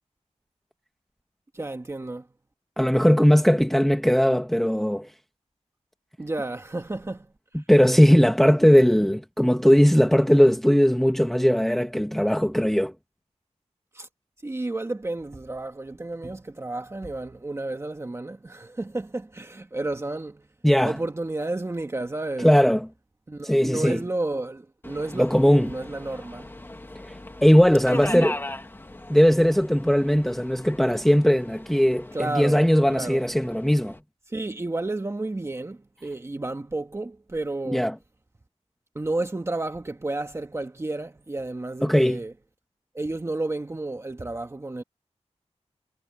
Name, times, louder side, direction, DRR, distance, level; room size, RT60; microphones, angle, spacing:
voice 1, 1.5-2.3 6.2-7.3 13.9-14.1 14.4-20.5 20.8-22.5 23.3-26.5 27.9-28.3 32.1-33.2 34.3-37.9 39.0-42.3 42.9-44.8, right 2 dB, 25° right, 1.6 m, -31 dB
voice 2, 2.8-5.1 7.5-12.9 20.6-21.0 22.4-22.9 23.4-24.0 25.2-25.7 27.0-28.4 29.1-34.0 37.7-37.9 41.8-42.2, equal, ahead, 1.1 m, -19 dB
Subway metro underground, 24.8-34.0, left 1 dB, 20° left, 1.8 m, -39 dB
wide cardioid pair, 125°, 12 cm